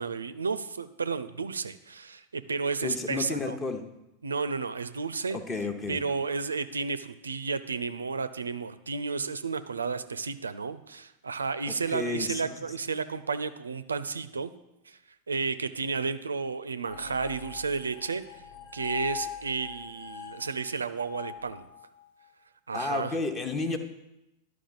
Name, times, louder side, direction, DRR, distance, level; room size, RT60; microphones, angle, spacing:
voice 1, 0.0-3.6 4.2-5.4 5.9-14.5 14.9-15.0 15.3-18.2 18.7-21.7 22.7-23.1, right 4 dB, 75° right, 13 dB, 0.4 m, -32 dB
voice 2, 2.8-3.8 5.3-6.0 11.7-12.4 22.7-23.8, left 3 dB, 20° left, 8 dB, 0.8 m, -32 dB
sound 1, 16.8-22.3, left 9 dB, 60° left, 0.9 m, -42 dB
11.5 x 4.8 x 3.9 m, 0.90 s
figure-of-eight pair, 90°, 0 cm